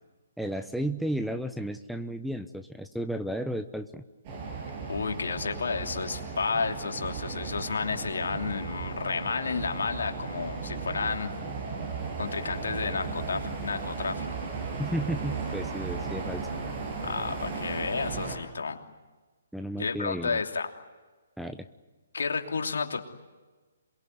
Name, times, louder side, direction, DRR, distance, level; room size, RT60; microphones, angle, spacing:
voice 1, 0.4-4.0 14.8-16.5 19.5-20.4 21.4-21.7, right 1 dB, ahead, 8 dB, 0.9 m, -33 dB
sound 1, 4.2-18.4, right 4 dB, 35° right, 7.7 m, -36 dB
voice 2, 4.9-11.3 12.2-14.4 17.0-18.8 19.8-20.7 22.1-23.0, left 5 dB, 70° left, 4 dB, 3.0 m, -31 dB
27.5 x 22.5 x 9.5 m, 1.3 s
figure-of-eight pair, 135°, 0 cm